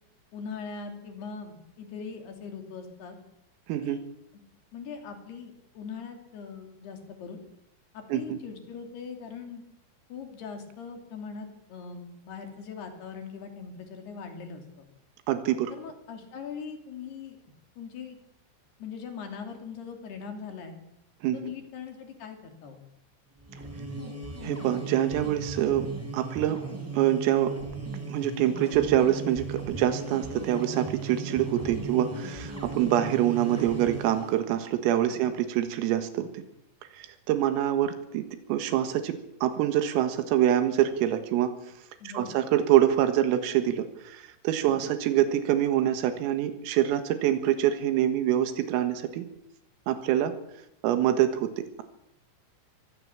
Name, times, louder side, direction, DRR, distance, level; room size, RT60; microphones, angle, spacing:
voice 1, 0.3-3.2 3.8-4.0 4.7-7.4 7.9-9.6 10.1-14.9 15.7-17.4 17.8-18.2 18.8-20.8 21.3-22.8 31.7-31.9 35.1-35.2 42.0-42.4 44.7-44.8, left 6 dB, 55° left, 5 dB, 4.7 m, -41 dB
voice 2, 3.7-4.0 8.1-8.4 15.3-15.7 21.2-21.4 24.4-25.9 26.1-26.6 26.9-27.5 28.1-36.4 36.9-41.5 42.1-49.3 49.9-50.3 50.8-51.8, right 11 dB, 90° right, 9 dB, 4.2 m, -25 dB
sound 1, 23.4-34.4, right 3 dB, 5° right, 3.5 m, -37 dB
23.5 x 19.0 x 7.3 m, 0.81 s
omnidirectional pair, 5.8 m